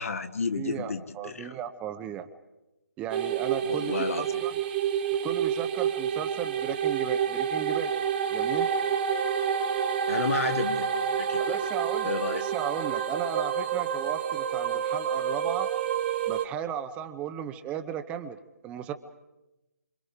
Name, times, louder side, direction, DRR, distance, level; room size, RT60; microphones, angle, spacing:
voice 1, 0.0-1.5 3.6-4.4 10.1-11.6 12.0-12.4, left 5 dB, 55° left, 7 dB, 1.8 m, -32 dB
voice 2, 0.5-2.3 3.0-4.5 5.2-7.9 8.3-8.7 11.4-15.7 16.3-18.4 18.6-18.9, right 9 dB, 15° right, 8 dB, 0.8 m, -35 dB
sound 1, 3.1-16.5, right 8 dB, 35° right, 1.3 m, -28 dB
28.0 x 27.0 x 5.0 m, 1.0 s
figure-of-eight pair, 145°, 9 cm